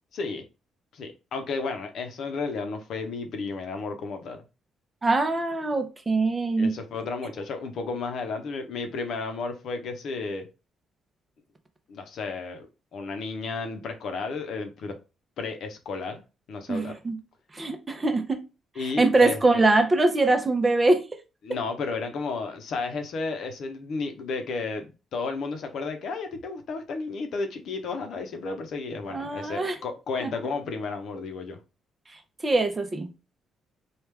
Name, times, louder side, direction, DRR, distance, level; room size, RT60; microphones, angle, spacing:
voice 1, 0.1-0.4 0.9-4.4 6.6-10.4 11.9-12.7 12.9-15.0 15.4-16.2 16.5-16.9 18.8-19.4 21.4-31.6, left 4 dB, 70° left, 0.7 m, -33 dB
voice 2, 5.0-6.7 16.7-17.2 17.5-18.4 19.0-21.0 29.1-29.8 30.2-30.3 32.4-33.1, right 2 dB, 25° right, 0.6 m, -23 dB
3.2 x 2.4 x 3.3 m
cardioid pair, 90°, 0 cm